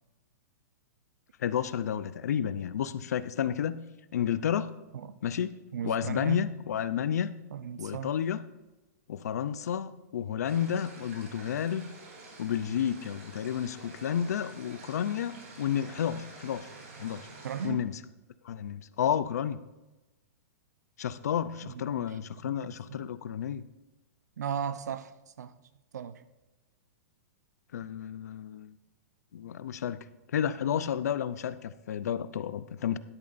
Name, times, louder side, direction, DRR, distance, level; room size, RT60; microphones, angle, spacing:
voice 1, 1.4-3.8 4.1-4.7 5.2-5.5 5.8-7.3 7.8-8.4 9.1-11.8 12.4-16.7 17.0-17.3 17.6-17.9 18.4-19.6 21.0-23.6 27.7-28.7 29.3-30.0 30.3-33.0, left 9 dB, 75° left, 0.6 m, -31 dB
voice 2, 5.7-6.5 7.5-8.1 17.4-17.8 21.6-22.2 22.4-23.1 24.4-25.5 25.9-26.2, right 8 dB, 85° right, 0.7 m, -37 dB
sound 1, 10.4-17.7, right 3 dB, 55° right, 3.4 m, -49 dB
12.0 x 10.5 x 2.6 m
hypercardioid pair, 175°, 9 cm